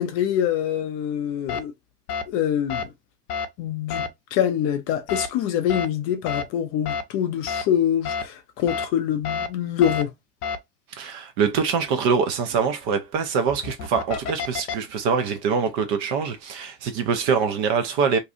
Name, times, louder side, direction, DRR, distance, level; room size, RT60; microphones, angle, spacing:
voice 1, 0.0-1.7 2.3-2.9 3.6-10.1, left 10 dB, 30° left, 0.4 m, -25 dB
sound 1, 1.5-1.6 2.1-2.2 2.7-2.8 3.3-3.5 3.9-4.1 5.1-5.3 5.7-5.9 6.3-6.4 6.9-7.0 7.5-7.6 8.1-8.2 8.7-8.9 9.2-9.5 9.8-10.0 10.4-10.6 13.4-14.8, left 6 dB, 70° left, 0.7 m, -28 dB
voice 2, 10.9-18.2, right 6 dB, 35° right, 0.4 m, -24 dB
2.7 x 2.3 x 2.5 m
figure-of-eight pair, 85°, 47 cm